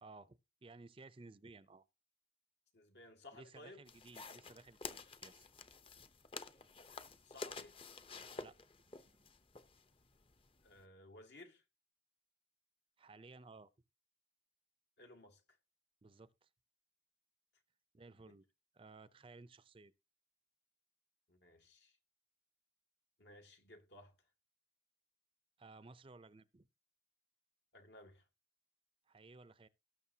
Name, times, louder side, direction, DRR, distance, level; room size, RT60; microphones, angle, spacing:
voice 1, 0.0-1.9 3.3-5.5 8.4-8.6 8.9-9.2 13.0-13.7 16.0-16.5 17.9-18.4 18.7-19.9 25.6-26.7 29.1-29.7, right 3 dB, 30° right, 0.5 m, -57 dB
voice 2, 2.7-3.8 7.2-7.8 10.6-11.6 15.0-15.4 21.3-22.0 23.2-24.1 27.7-28.2, left 1 dB, 70° left, 2.2 m, -58 dB
sound 1, 3.9-10.8, left 4 dB, 30° left, 0.7 m, -51 dB
18.0 x 6.5 x 2.8 m
head